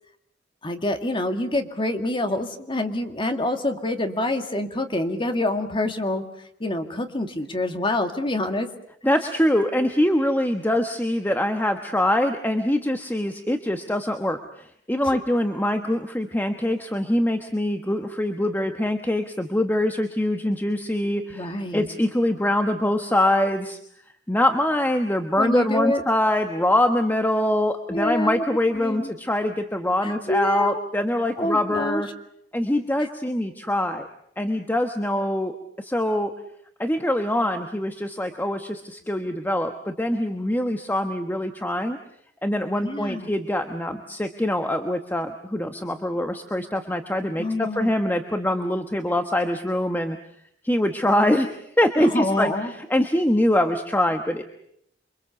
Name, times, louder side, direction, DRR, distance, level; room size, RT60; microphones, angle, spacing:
voice 1, 0.6-6.2 6.6-8.7 15.0-15.2 21.3-21.9 25.4-26.0 27.9-28.4 28.7-29.1 30.0-30.9 31.4-32.0 33.0-33.1 42.8-43.3 47.4-47.9 52.0-52.7, left 1 dB, 25° left, 6 dB, 2.1 m, -26 dB
voice 2, 9.0-23.8 24.3-32.1 32.5-34.1 34.4-35.5 35.8-36.3 36.8-42.0 42.4-50.2 50.6-52.5 52.8-54.4, left 1 dB, 10° left, 6 dB, 1.3 m, -24 dB
28.5 x 24.5 x 7.1 m, 0.71 s
head